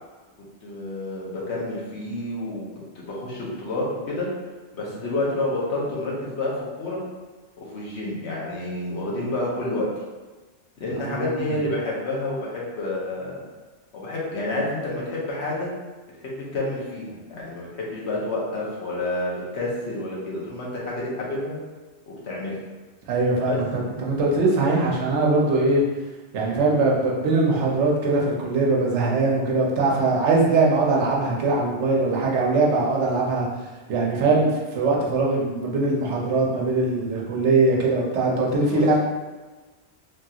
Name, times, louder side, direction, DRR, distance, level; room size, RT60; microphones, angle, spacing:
voice 1, 0.6-2.7 2.9-4.3 4.8-7.0 7.6-9.9 10.8-13.4 13.9-15.7 16.2-21.6 22.1-22.6 23.5-23.6 38.7-38.8, left 2 dB, 75° left, -4 dB, 1.1 m, -29 dB
voice 2, 11.0-11.6 23.1-25.8 26.3-33.5 33.9-39.0, right 3 dB, 90° right, -3 dB, 1.0 m, -21 dB
3.3 x 2.7 x 2.3 m, 1.3 s
omnidirectional pair, 1.1 m